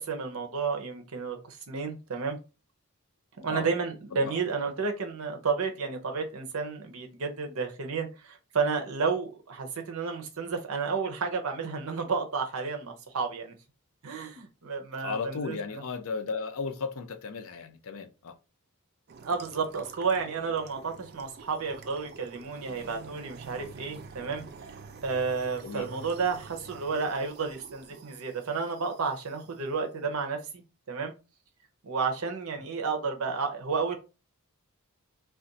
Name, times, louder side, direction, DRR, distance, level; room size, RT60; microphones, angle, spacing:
voice 1, 0.0-2.4 3.4-13.5 14.0-15.8 19.2-24.4 25.0-30.6 30.9-31.1 31.8-34.0, right 5 dB, 70° right, 0.7 m, -31 dB
voice 2, 15.0-18.3 25.6-25.9, left 5 dB, 70° left, 0.5 m, -35 dB
sound 1, 19.1-29.5, right 5 dB, 45° right, 0.4 m, -48 dB
2.5 x 2.2 x 3.9 m
head